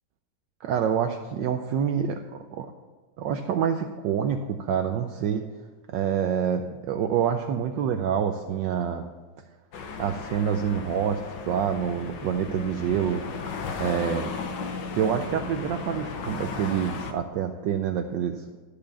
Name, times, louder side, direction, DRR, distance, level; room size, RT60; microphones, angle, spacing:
voice 1, 0.6-2.2 2.5-2.7 3.2-5.5 5.9-9.0 10.0-13.2 13.8-14.3 14.9-18.4, right 8 dB, 75° right, 7 dB, 1.2 m, -27 dB
sound 1, 9.7-17.1, left 5 dB, 65° left, 1.5 m, -35 dB
12.5 x 5.1 x 6.9 m, 1.4 s
omnidirectional pair, 2.2 m